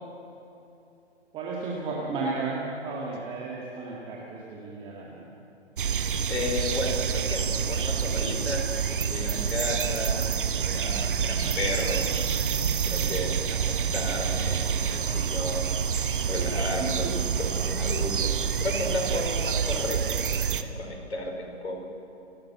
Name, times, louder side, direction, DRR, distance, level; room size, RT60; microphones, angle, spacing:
voice 1, 1.3-5.2 16.8-17.1, right 3 dB, 15° right, -4 dB, 2.0 m, -33 dB
sound 1, 5.8-20.6, right 7 dB, 50° right, 1.1 m, -27 dB
voice 2, 6.3-12.0 12.8-15.7 16.3-21.8, left 1 dB, 65° left, 1 dB, 5.3 m, -33 dB
29.5 x 12.5 x 7.3 m, 3.0 s
figure-of-eight pair, 135°, 34 cm